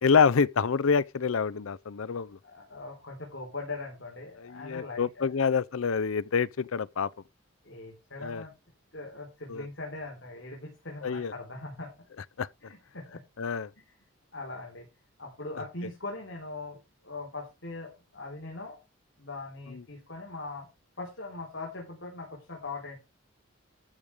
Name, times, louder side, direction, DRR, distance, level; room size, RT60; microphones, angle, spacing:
voice 1, 0.0-2.3 4.4-7.1 8.2-8.4 9.5-9.7 11.0-11.3 12.4-12.5 13.4-13.7, left 5 dB, 75° left, 0.5 m, -26 dB
voice 2, 2.4-5.4 7.6-8.5 8.9-11.9 12.6-13.2 13.8-13.9 14.3-14.9 15.2-18.8 19.2-20.7 21.0-23.0, left 2 dB, 60° left, 4.1 m, -41 dB
14.0 x 5.3 x 4.9 m
head